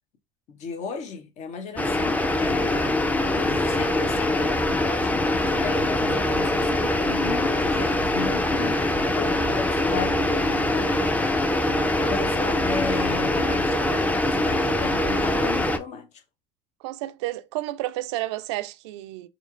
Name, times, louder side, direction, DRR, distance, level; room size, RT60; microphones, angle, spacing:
voice 1, 0.5-2.9 3.3-5.1 5.5-11.1 12.1-14.1 14.3-16.1, left 5 dB, 50° left, 1.0 m, -35 dB
sound 1, 1.8-15.8, left 1 dB, 10° left, 0.5 m, -23 dB
voice 2, 16.8-19.3, right 16 dB, 70° right, 0.4 m, -31 dB
4.3 x 2.9 x 2.4 m
figure-of-eight pair, 60°, 15 cm